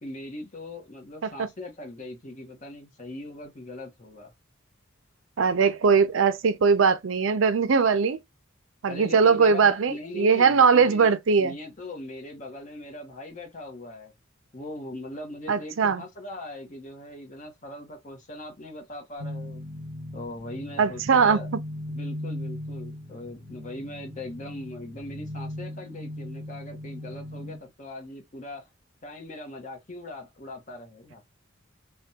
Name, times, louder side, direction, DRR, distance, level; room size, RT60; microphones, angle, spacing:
voice 1, 0.0-4.3 8.9-14.1 14.5-19.6 20.1-21.5 21.9-28.7 29.0-31.2, left 1 dB, 35° left, 1.0 m, -40 dB
voice 2, 5.4-8.2 8.8-11.5 15.5-16.0 20.8-21.4, right 5 dB, 65° right, 0.5 m, -20 dB
sound 1, 19.2-27.6, left 1 dB, 20° left, 2.0 m, -38 dB
3.3 x 2.2 x 2.7 m
head